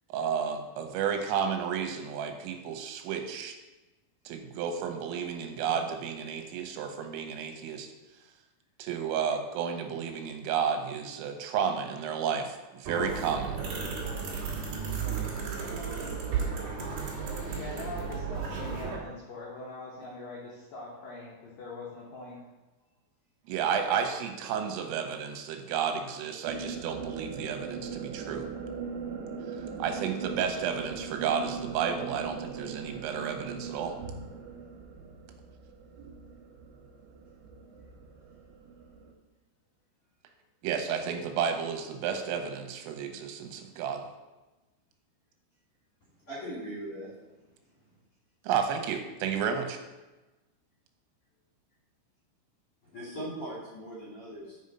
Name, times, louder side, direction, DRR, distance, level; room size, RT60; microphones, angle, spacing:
voice 1, 0.1-3.5 4.3-7.9 8.8-13.6 23.5-28.5 29.8-34.0 40.6-44.1 48.4-49.8, right 7 dB, 90° right, 5 dB, 3.4 m, -32 dB
sound 1, 12.9-19.0, right 5 dB, 55° right, 2.5 m, -34 dB
voice 2, 17.5-22.4, left 3 dB, 80° left, -4 dB, 2.0 m, -43 dB
sound 2, 26.4-39.1, right 5 dB, 70° right, 3.0 m, -40 dB
voice 3, 46.3-47.4 52.8-54.6, right 1 dB, 40° left, -7 dB, 2.3 m, -40 dB
7.8 x 5.5 x 5.3 m, 1.1 s
omnidirectional pair, 5.8 m